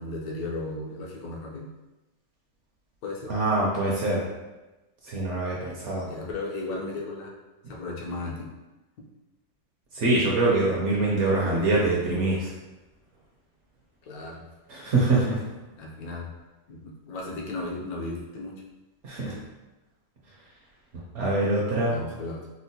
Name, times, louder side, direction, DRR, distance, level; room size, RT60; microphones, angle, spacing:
voice 1, 0.0-1.7 3.0-3.3 6.0-7.3 7.7-8.5 9.0-9.1 14.0-14.4 15.8-16.3 16.7-18.6 21.8-22.5, left 2 dB, 70° left, -2 dB, 1.1 m, -35 dB
voice 2, 3.3-4.2 5.0-6.1 9.9-12.5 14.7-15.4 19.0-19.4 21.1-22.0, right 2 dB, 60° right, -5 dB, 0.8 m, -24 dB
4.4 x 2.1 x 2.7 m, 1.1 s
omnidirectional pair, 1.7 m